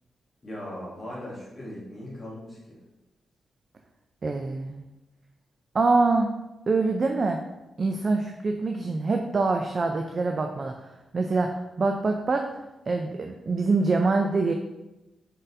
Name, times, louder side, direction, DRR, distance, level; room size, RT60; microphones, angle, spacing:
voice 1, 0.4-2.8, left 1 dB, 30° left, -5 dB, 1.1 m, -39 dB
voice 2, 4.2-4.9 5.7-6.3 6.7-7.4 7.8-10.9 11.1-11.5 11.8-12.4 12.9-14.5, right 3 dB, 40° right, 3 dB, 0.3 m, -24 dB
3.9 x 3.9 x 2.6 m, 0.98 s
wide cardioid pair, 115°, 0 cm